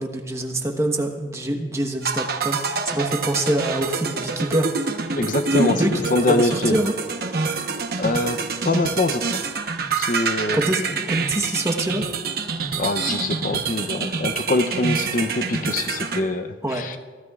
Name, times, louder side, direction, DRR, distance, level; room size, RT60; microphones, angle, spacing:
voice 1, 0.0-4.7 5.6-6.9 10.5-12.1 16.6-16.9, right 1 dB, 15° right, 3 dB, 1.1 m, -25 dB
sound 1, 2.0-16.2, right 4 dB, 55° right, 1.1 m, -26 dB
voice 2, 5.2-5.8 6.1-6.8 8.0-9.4 9.9-10.6 12.8-17.0, left 2 dB, 50° left, 9 dB, 0.7 m, -24 dB
23.0 x 16.0 x 2.4 m, 1.4 s
head